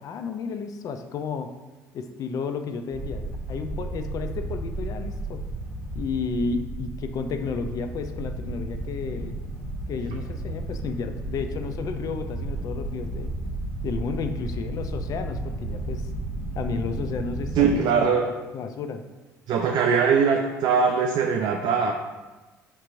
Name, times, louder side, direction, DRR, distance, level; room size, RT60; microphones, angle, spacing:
voice 1, 0.0-1.5 1.9-5.4 5.9-9.4 9.9-13.3 13.8-16.1 16.5-18.2 18.5-19.0, left 5 dB, 50° left, 7 dB, 0.4 m, -32 dB
sound 1, 2.9-17.8, right 2 dB, 15° right, 0.9 m, -33 dB
voice 2, 17.6-18.3 19.5-21.9, right 6 dB, 60° right, 2 dB, 0.3 m, -21 dB
4.4 x 3.0 x 2.5 m, 1.2 s
hypercardioid pair, 65°, 8 cm